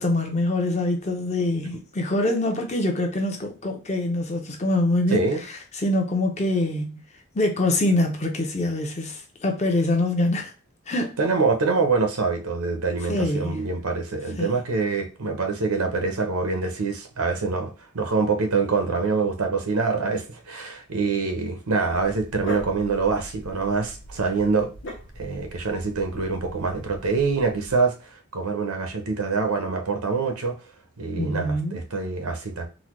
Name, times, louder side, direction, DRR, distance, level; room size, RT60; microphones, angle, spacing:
voice 1, 0.0-5.2 5.8-7.0 7.3-10.5 10.9-11.2 13.1-13.6 14.4-14.5 31.2-31.8, left 1 dB, 30° left, 0.6 m, -24 dB
voice 2, 5.1-5.4 11.2-24.7 25.2-30.6 31.0-32.7, right 4 dB, 90° right, 0.7 m, -25 dB
Dog, 21.9-27.8, equal, 60° left, 0.8 m, -40 dB
3.9 x 2.2 x 3.0 m
head